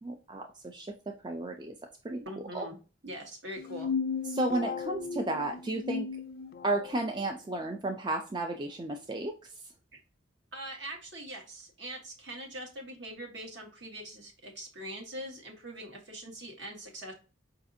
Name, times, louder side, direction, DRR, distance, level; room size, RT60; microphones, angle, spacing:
voice 1, 0.0-1.8 2.0-2.2 2.5-2.7 4.3-6.1 6.6-9.7, right 2 dB, 25° right, 4 dB, 0.4 m, -33 dB
voice 2, 2.2-2.8 3.0-3.9 9.9-10.0 10.5-17.1, right 1 dB, 60° right, 2 dB, 1.2 m, -42 dB
sound 1, 3.6-7.0, left 5 dB, 50° left, 0.3 m, -35 dB
4.9 x 2.5 x 2.6 m, 0.34 s
head